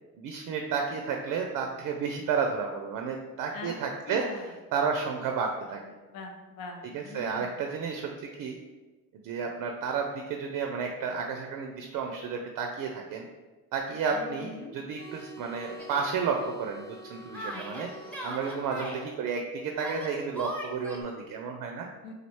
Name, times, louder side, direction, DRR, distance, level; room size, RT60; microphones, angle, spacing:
voice 1, 0.2-4.4 4.7-5.8 6.9-8.1 8.4-8.6 9.2-13.3 13.7-17.9 18.2-21.9, right 5 dB, 60° right, 3 dB, 0.5 m, -32 dB
voice 2, 4.1-4.5 6.1-7.5 14.1-14.7 17.5-17.9 22.0-22.1, left 3 dB, 65° left, 3 dB, 0.6 m, -42 dB
sound 1, 14.9-19.1, equal, 25° left, 1.0 m, -47 dB
Yell, 15.8-16.1 17.3-19.0 19.8-21.0, equal, 5° left, 0.7 m, -39 dB
3.2 x 2.4 x 3.0 m, 1.2 s
hypercardioid pair, 60°, 37 cm